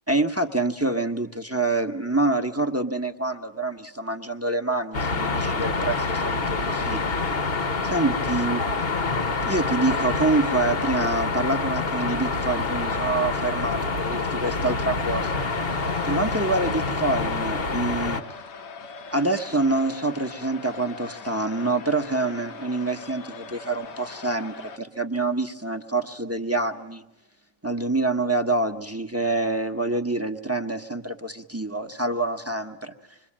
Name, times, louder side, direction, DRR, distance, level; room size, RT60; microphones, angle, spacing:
voice 1, 0.1-7.0 7.8-8.6 9.5-15.4 16.0-18.2 19.1-27.0 27.6-32.9, right 2 dB, 10° right, 5 dB, 0.9 m, -26 dB
sound 1, 4.9-18.2, left 3 dB, 40° left, 1.2 m, -26 dB
sound 2, 15.1-24.8, left 4 dB, 70° left, 1.8 m, -41 dB
27.0 x 23.0 x 8.8 m, 0.86 s
omnidirectional pair, 1.9 m